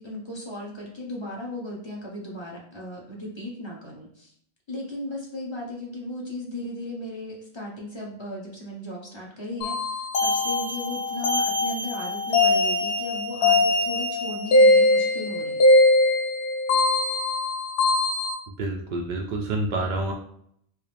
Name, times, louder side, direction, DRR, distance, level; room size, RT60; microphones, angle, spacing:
voice 1, 0.0-4.3 4.7-15.6, left 1 dB, 25° left, -4 dB, 1.0 m, -36 dB
sound 1, 9.6-18.3, left 2 dB, 85° left, 1.0 m, -21 dB
voice 2, 18.6-20.1, right 2 dB, 60° right, 0 dB, 0.6 m, -28 dB
4.6 x 2.0 x 3.3 m, 0.68 s
omnidirectional pair, 1.1 m